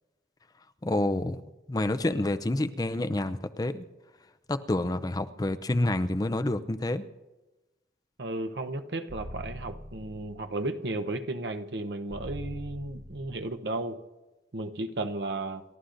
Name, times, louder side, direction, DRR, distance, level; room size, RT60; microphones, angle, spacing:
voice 1, 0.8-1.4 1.7-3.8 4.5-7.0, left 1 dB, 20° left, 9 dB, 0.4 m, -28 dB
voice 2, 8.2-14.0 14.5-15.6, right 2 dB, 70° right, 7 dB, 0.8 m, -34 dB
sound 1, 9.1-10.5 12.1-13.5, equal, 55° right, 4.0 m, -42 dB
30.0 x 13.0 x 2.6 m, 1.1 s
head